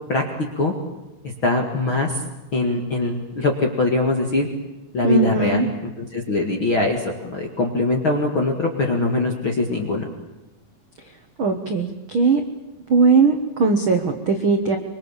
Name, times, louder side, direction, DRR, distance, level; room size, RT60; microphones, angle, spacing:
voice 1, 1.4-2.2 2.5-4.5 4.9-5.7 6.0-10.1, left 2 dB, 40° left, 1 dB, 2.0 m, -22 dB
voice 2, 5.0-5.7 11.4-12.4 12.9-14.8, right 4 dB, 90° right, 5 dB, 1.1 m, -19 dB
25.5 x 24.0 x 7.4 m, 1.0 s
omnidirectional pair, 4.7 m